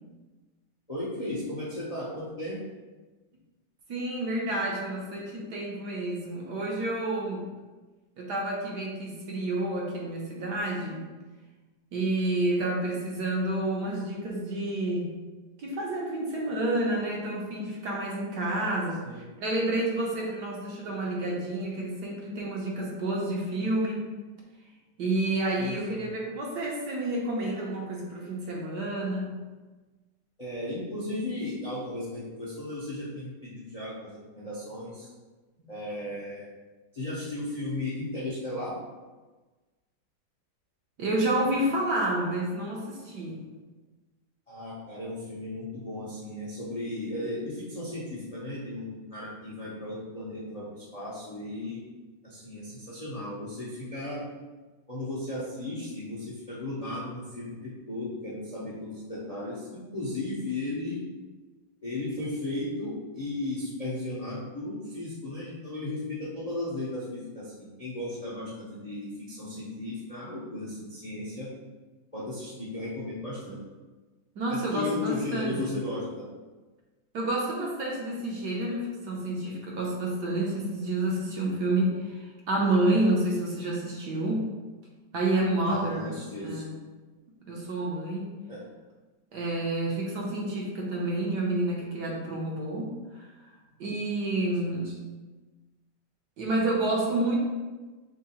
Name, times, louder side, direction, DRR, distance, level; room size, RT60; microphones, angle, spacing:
voice 1, 0.9-2.6 19.0-19.3 25.6-26.1 30.4-35.1 35.7-36.5 36.9-38.7 44.5-51.8 52.2-54.3 54.9-61.0 61.8-71.5 72.1-73.6 74.5-76.3 85.6-86.6 88.5-88.7 94.6-94.8, left 2 dB, 45° left, -7 dB, 0.5 m, -35 dB
voice 2, 3.9-7.5 8.2-11.1 11.9-15.1 15.6-24.0 25.0-29.4 35.6-35.7 41.0-43.4 74.4-75.6 77.1-84.5 85.1-86.2 86.4-86.7 87.5-88.3 89.3-93.3 93.8-95.0 96.4-97.4, right 1 dB, 65° right, -3 dB, 1.2 m, -29 dB
3.7 x 3.0 x 4.3 m, 1.3 s
omnidirectional pair, 2.1 m